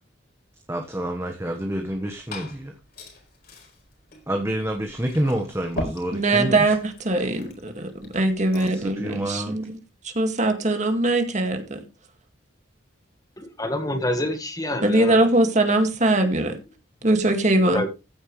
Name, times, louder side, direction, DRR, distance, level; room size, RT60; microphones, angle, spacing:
voice 1, 0.7-2.7 4.3-6.6 8.5-9.6, right 1 dB, 15° right, 1.3 m, -28 dB
Glass / Fill (with liquid), 1.8-8.9, left 1 dB, 50° left, 4.4 m, -40 dB
voice 2, 6.1-9.8 10.0-11.8 14.8-16.6 17.0-17.8, right 2 dB, 35° right, 2.1 m, -21 dB
voice 3, 13.4-15.3 17.7-17.9, left 1 dB, 20° left, 1.6 m, -27 dB
15.0 x 9.0 x 3.2 m
head